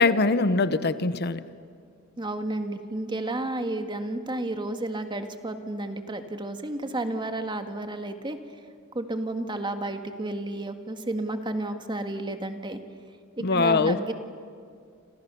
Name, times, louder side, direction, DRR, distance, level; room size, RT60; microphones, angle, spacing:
voice 1, 0.0-1.4 13.4-14.1, left 3 dB, 50° left, 13 dB, 0.9 m, -22 dB
voice 2, 2.2-8.4 8.9-12.8 13.4-14.1, right 2 dB, 20° right, 7 dB, 1.7 m, -32 dB
29.5 x 27.0 x 6.9 m, 2.2 s
head